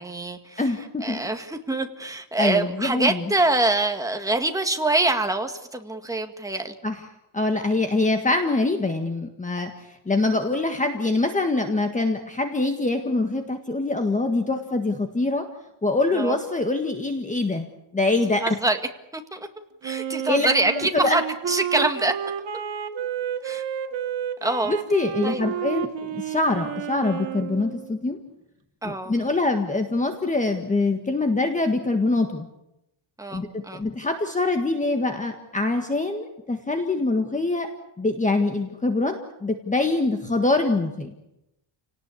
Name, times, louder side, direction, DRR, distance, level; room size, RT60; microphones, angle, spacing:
voice 1, 0.0-0.6 1.0-6.7 16.1-16.4 18.4-18.8 19.1-19.5 19.8-22.1 23.4-23.6 24.4-24.7 25.2-25.4 28.8-29.1 33.2-33.8, right 2 dB, 5° right, 5 dB, 1.8 m, -25 dB
voice 2, 0.6-1.2 2.4-3.2 6.8-7.0 7.3-9.7 10.0-15.4 15.8-17.7 17.9-18.6 20.3-20.5 21.0-21.2 24.6-28.2 28.8-32.5 33.3-37.7 38.0-41.1, left 2 dB, 15° left, 5 dB, 1.7 m, -24 dB
Wind instrument woodwind instrument, 19.8-28.0, right 9 dB, 70° right, 2.0 m, -31 dB
29.5 x 18.5 x 8.5 m, 0.89 s
wide cardioid pair, 175°, 47 cm